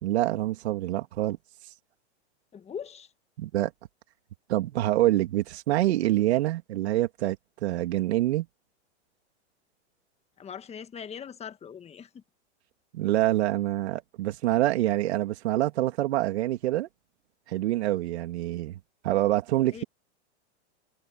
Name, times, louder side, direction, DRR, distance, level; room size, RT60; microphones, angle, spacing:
voice 1, 0.0-1.4 3.4-3.7 4.5-7.4 7.6-8.5 12.9-16.9 17.5-18.8 19.0-19.8, right 15 dB, 70° right, 3.2 m, -26 dB
voice 2, 2.5-3.1 10.4-12.2 19.7-19.8, left 7 dB, 20° left, 1.7 m, -41 dB
hypercardioid pair, 120°, 34 cm